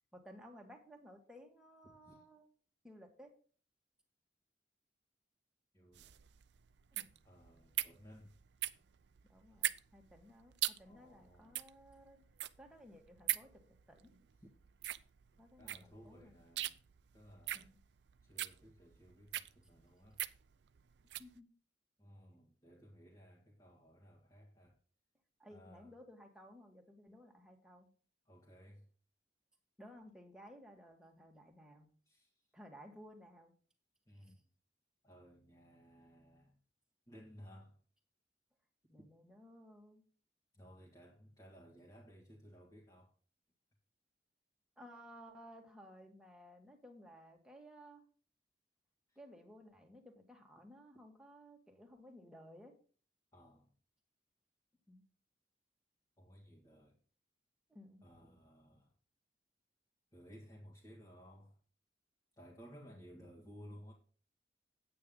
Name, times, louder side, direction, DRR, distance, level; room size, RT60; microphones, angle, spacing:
voice 1, 0.1-2.5 2.8-3.3 6.9-7.1 9.2-12.2 12.6-14.1 15.4-16.4 17.5-17.8 21.2-21.5 25.4-27.9 29.8-31.9 32.5-33.5 34.1-34.3 38.9-40.0 44.8-48.0 49.2-52.8 54.9-55.0 57.7-58.0 62.7-63.0, equal, 5° right, 1.8 m, -57 dB
voice 2, 5.7-6.1 7.2-8.3 10.8-11.6 14.4-14.5 15.6-16.8 17.1-17.7 18.2-20.2 22.0-24.8 25.5-25.9 28.3-28.8 32.1-32.3 34.1-34.4 35.0-36.6 37.1-37.8 40.5-43.1 49.1-49.2 53.3-53.7 56.2-57.0 58.0-58.9 60.1-61.6 62.4-63.9, equal, 20° left, 2.0 m, -58 dB
sound 1, 5.9-21.3, right 14 dB, 70° right, 0.5 m, -42 dB
9.2 x 8.9 x 3.9 m
head